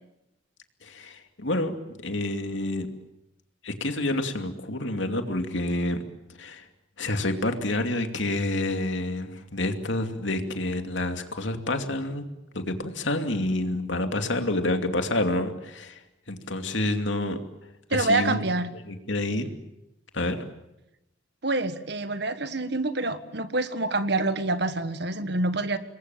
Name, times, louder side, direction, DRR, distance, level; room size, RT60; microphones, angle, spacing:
voice 1, 0.8-2.9 3.6-6.0 6.4-6.6 7.0-12.2 12.5-16.0 16.3-17.4 17.9-18.4 18.9-19.5 20.1-20.4, left 1 dB, 70° left, 6 dB, 2.6 m, -28 dB
voice 2, 17.9-18.7 21.4-25.8, right 2 dB, 55° right, 11 dB, 1.6 m, -26 dB
27.5 x 22.0 x 9.1 m, 0.89 s
head